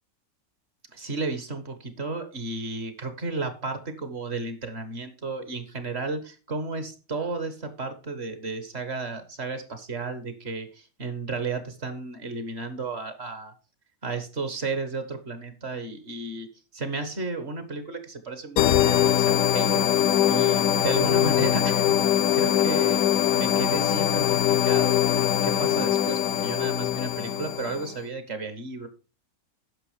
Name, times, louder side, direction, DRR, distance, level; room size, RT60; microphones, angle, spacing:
voice 1, 0.9-13.5 14.0-16.5 16.7-21.8 22.1-23.0 23.3-28.9, right 3 dB, 45° right, 9 dB, 1.5 m, -33 dB
sound 1, 18.6-27.9, left 11 dB, 70° left, 1.0 m, -22 dB
9.8 x 6.2 x 4.9 m, 0.33 s
omnidirectional pair, 1.6 m